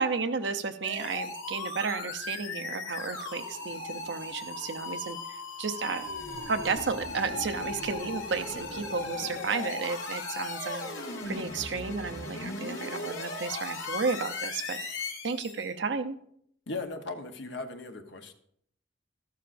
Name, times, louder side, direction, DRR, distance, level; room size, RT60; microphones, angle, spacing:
voice 1, 0.0-6.0 6.5-10.9 11.3-14.8 15.2-16.2, right 4 dB, 65° right, 9 dB, 0.7 m, -32 dB
sound 1, 0.8-15.7, left 3 dB, 80° left, 1.9 m, -37 dB
voice 2, 16.7-18.3, left 3 dB, 65° left, 6 dB, 1.0 m, -37 dB
13.5 x 11.5 x 2.6 m, 0.68 s
head